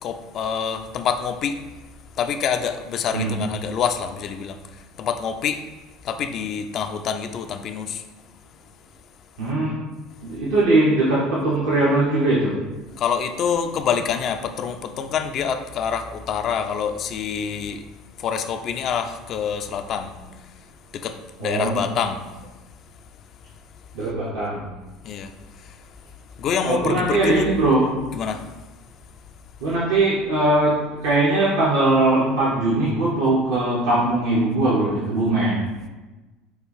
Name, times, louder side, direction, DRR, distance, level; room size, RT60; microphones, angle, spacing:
voice 1, 0.0-1.6 2.2-5.6 6.0-8.0 13.0-17.8 18.2-20.1 20.9-22.2 25.0-25.7 26.4-27.5 28.1-28.5, left 7 dB, 50° left, 0.4 m, -26 dB
voice 2, 9.4-9.8 10.2-12.6 21.4-21.8 23.9-24.7 26.6-27.9 29.6-35.6, right 2 dB, 70° right, 0.9 m, -20 dB
6.3 x 2.4 x 3.2 m
hypercardioid pair, 70°, 0 cm